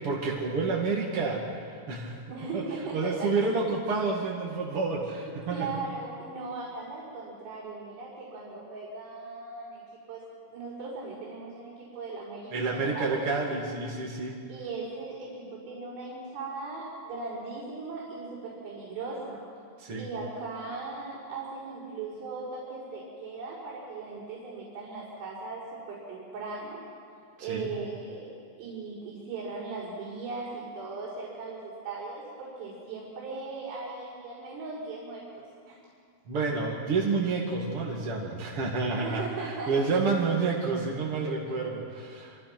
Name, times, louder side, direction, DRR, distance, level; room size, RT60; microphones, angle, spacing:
voice 1, 0.0-1.6 1.9-2.2 2.5-2.6 2.9-5.7 12.5-14.4 19.8-20.1 27.4-27.7 36.3-42.4, right 4 dB, 45° right, -2 dB, 2.0 m, -29 dB
voice 2, 2.3-3.5 5.5-9.8 10.1-10.2 10.5-13.2 14.5-19.4 20.0-26.8 27.4-28.3 28.6-35.8 38.9-39.9, right 3 dB, 75° right, -9 dB, 7.7 m, -38 dB
27.0 x 26.5 x 6.1 m, 2.3 s
omnidirectional pair, 5.9 m